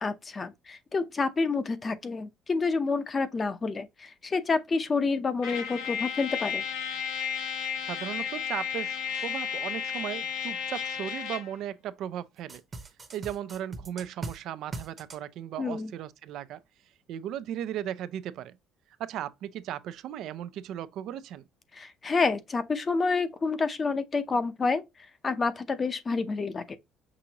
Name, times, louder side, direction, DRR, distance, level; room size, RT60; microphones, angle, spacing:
voice 1, 0.0-6.6 15.6-15.9 21.7-24.8 25.2-26.8, left 4 dB, 25° left, 0.6 m, -28 dB
Trumpet, 5.4-11.5, left 7 dB, 90° left, 1.4 m, -33 dB
voice 2, 7.9-12.6 13.1-16.6 17.1-18.6 19.0-21.4, right 11 dB, 65° right, 0.5 m, -36 dB
sound 1, 12.5-14.4 14.7-15.2, right 3 dB, 20° right, 0.9 m, -39 dB
6.0 x 2.6 x 2.8 m
cardioid pair, 125°, 0 cm